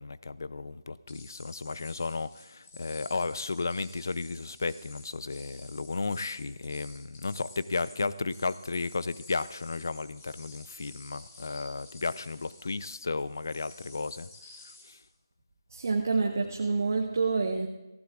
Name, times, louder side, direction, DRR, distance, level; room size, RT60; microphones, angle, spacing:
voice 1, 0.0-14.3 14.6-15.0, left 3 dB, 50° left, 16 dB, 0.5 m, -34 dB
sound 1, 1.1-15.1, left 3 dB, 25° left, 2.1 m, -52 dB
voice 2, 15.7-17.7, right 4 dB, 40° right, 2 dB, 1.1 m, -27 dB
18.5 x 15.5 x 2.4 m, 0.98 s
figure-of-eight pair, 170°, 2 cm